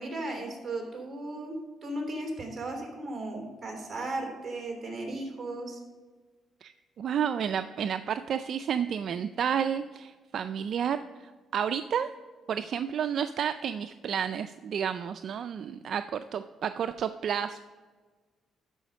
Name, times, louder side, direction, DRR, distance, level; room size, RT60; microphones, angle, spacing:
voice 1, 0.0-5.8, right 2 dB, 30° right, 1 dB, 3.2 m, -36 dB
voice 2, 7.0-12.1 12.5-17.6, right 8 dB, 60° right, 10 dB, 0.3 m, -31 dB
12.5 x 5.0 x 5.3 m, 1.4 s
cardioid pair, 90°, 0 cm